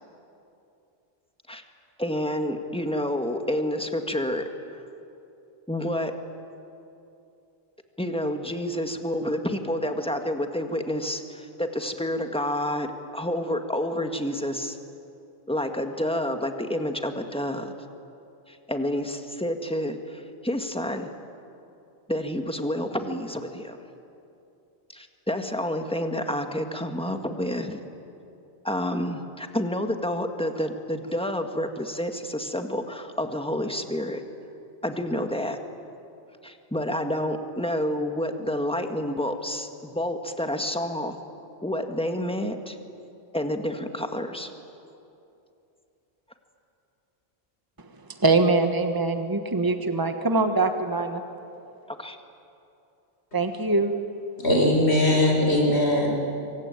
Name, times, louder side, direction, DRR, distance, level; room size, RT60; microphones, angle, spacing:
voice 1, 2.0-4.8 5.7-6.1 8.0-14.8 15.5-17.7 18.5-21.1 22.1-23.8 24.9-27.8 28.6-34.2 34.8-35.6 36.4-41.2 41.6-42.8 43.3-44.5 51.9-52.2, left 1 dB, 5° left, 5 dB, 1.7 m, -29 dB
voice 2, 48.2-51.2 53.3-53.9, right 3 dB, 20° right, 6 dB, 1.5 m, -23 dB
voice 3, 54.4-56.1, left 1 dB, 85° left, -1 dB, 6.1 m, -20 dB
25.5 x 24.5 x 9.1 m, 2.7 s
omnidirectional pair, 1.1 m